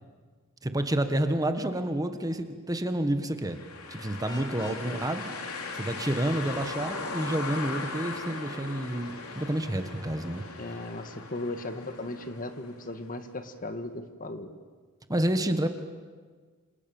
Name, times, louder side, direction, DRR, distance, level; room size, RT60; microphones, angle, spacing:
voice 1, 0.6-3.6 3.9-5.3 5.7-10.4 15.1-15.7, right 1 dB, 15° right, 8 dB, 1.5 m, -29 dB
sound 1, 3.5-13.3, left 3 dB, 80° left, 3.5 m, -39 dB
Vehicle horn car horn honking, 4.2-4.9, left 2 dB, 20° left, 3.3 m, -44 dB
voice 2, 4.6-5.1 10.6-14.6, left 2 dB, 40° left, 8 dB, 1.7 m, -37 dB
27.5 x 27.0 x 7.2 m, 1.5 s
head